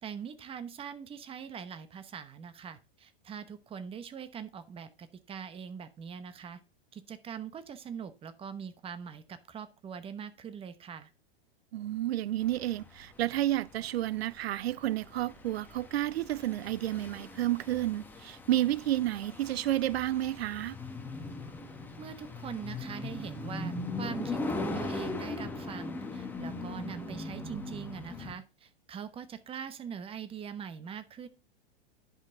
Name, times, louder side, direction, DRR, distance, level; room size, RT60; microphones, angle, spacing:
voice 1, 0.0-6.6 6.9-11.1 22.0-31.3, right 7 dB, 20° right, 0.9 m, -42 dB
voice 2, 11.7-20.8, right 14 dB, 90° right, 0.5 m, -31 dB
sound 1, 12.5-28.3, left 2 dB, 5° left, 1.1 m, -40 dB
10.5 x 5.7 x 3.7 m
hypercardioid pair, 130°, 30 cm